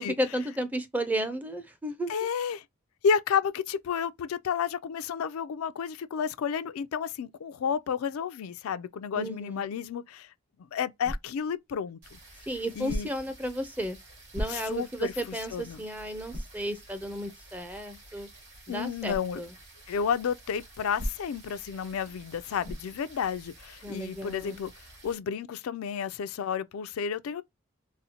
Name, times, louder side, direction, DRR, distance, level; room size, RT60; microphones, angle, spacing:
voice 1, 0.0-2.1 9.1-9.6 12.5-14.0 14.3-18.3 18.7-19.5 23.8-24.6, right 1 dB, 10° right, 0.4 m, -33 dB
voice 2, 2.1-2.6 3.0-10.3 10.6-12.2 12.8-13.1 14.5-15.8 18.7-19.4 19.9-24.7 25.0-27.4, left 7 dB, 90° left, 0.4 m, -31 dB
sound 1, 11.0-11.6 12.8-13.4 14.3-14.9 15.4-15.5 16.3-16.6 19.1-19.3 21.0-21.5 22.6-23.0, equal, 35° right, 0.7 m, -36 dB
sound 2, 12.0-25.2, right 2 dB, 60° right, 2.2 m, -52 dB
4.1 x 2.0 x 2.8 m
head